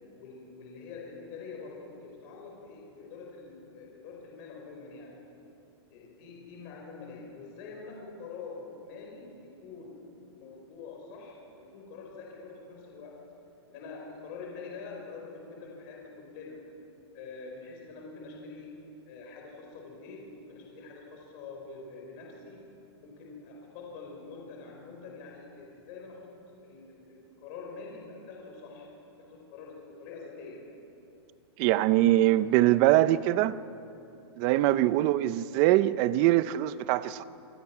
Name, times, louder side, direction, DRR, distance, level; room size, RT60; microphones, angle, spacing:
voice 1, 0.2-5.2 5.9-13.3 13.7-16.7 17.1-22.7 23.0-28.9 29.2-30.7 34.7-35.1, left 4 dB, 35° left, 4.8 m, -45 dB
voice 2, 31.6-33.6 34.4-37.2, right 15 dB, 25° right, 0.5 m, -23 dB
28.0 x 20.0 x 5.9 m
hypercardioid pair, 165°, 14 cm